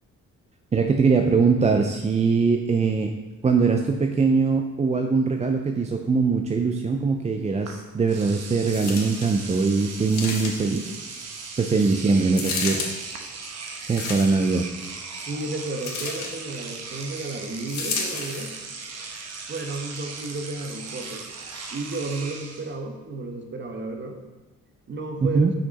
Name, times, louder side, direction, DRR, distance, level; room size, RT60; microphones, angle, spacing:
voice 1, 0.7-3.1 3.4-10.9 11.6-12.9 13.9-14.7 25.2-25.5, right 4 dB, 20° right, 4 dB, 0.5 m, -22 dB
Engine / Domestic sounds home sounds, 7.7-7.8 8.1-22.7, right 4 dB, 60° right, 1.0 m, -38 dB
sound 1, 8.7-9.3 10.1-10.8 12.3-12.9 13.8-14.5 15.8-16.3 17.7-18.5 19.2-19.3, left 4 dB, 65° left, 1.5 m, -31 dB
voice 2, 15.2-18.5 19.5-21.3 21.7-24.2 24.9-25.5, right 2 dB, 40° right, 4 dB, 1.2 m, -32 dB
6.1 x 5.8 x 4.1 m, 1.2 s
cardioid pair, 90°, 30 cm